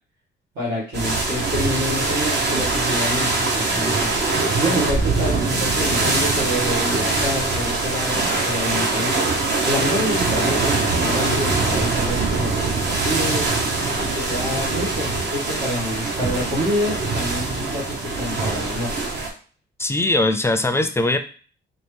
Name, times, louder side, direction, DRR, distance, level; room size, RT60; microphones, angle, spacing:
voice 1, 0.6-9.2 9.6-13.5 14.0-18.9, equal, 75° right, -6 dB, 2.0 m, -27 dB
sound 1, 0.9-19.3, right 3 dB, 60° right, 1.1 m, -22 dB
voice 2, 19.8-21.2, left 2 dB, 15° left, 8 dB, 0.4 m, -20 dB
4.4 x 2.3 x 3.4 m, 0.40 s
cardioid pair, 90°, 20 cm